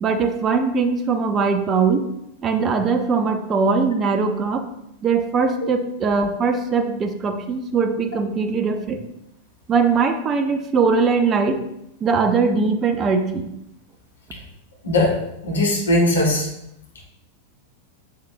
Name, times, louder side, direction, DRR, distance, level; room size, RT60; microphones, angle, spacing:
voice 1, 0.0-2.0 2.4-4.7 5.0-9.0 9.7-11.6 12.0-13.5, right 5 dB, 25° right, 7 dB, 0.8 m, -21 dB
voice 2, 14.8-15.2 15.4-16.5, left 1 dB, 70° left, -1 dB, 1.8 m, -19 dB
7.6 x 6.6 x 2.3 m, 0.81 s
figure-of-eight pair, 90°, 0 cm